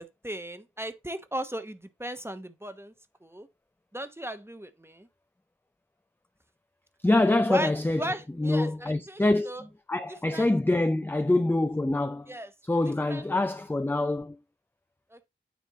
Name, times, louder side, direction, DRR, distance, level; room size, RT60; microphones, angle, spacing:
voice 1, 0.0-2.9 3.2-3.5 3.9-5.1 7.5-7.7 8.0-9.6 10.3-10.5 12.3-12.5 13.1-13.2 15.1-15.3, right 1 dB, 10° right, 1.0 m, -36 dB
voice 2, 7.0-8.1 8.4-12.3 12.6-14.4, left 2 dB, 10° left, 0.4 m, -25 dB
9.3 x 3.4 x 4.1 m
wide cardioid pair, 50°, 21 cm